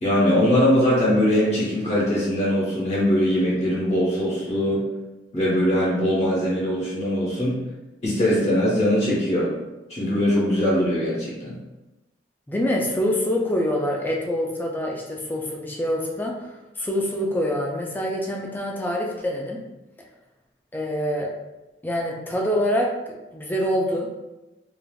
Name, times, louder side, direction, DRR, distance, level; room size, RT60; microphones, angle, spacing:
voice 1, 0.0-4.8 5.3-7.6 8.0-9.5 9.9-11.5, equal, 40° left, -7 dB, 0.9 m, -21 dB
voice 2, 12.5-16.4 16.8-19.6 20.7-21.3 21.8-22.9 23.3-24.1, equal, 10° left, -1 dB, 0.4 m, -25 dB
3.3 x 2.5 x 2.3 m, 1.0 s
head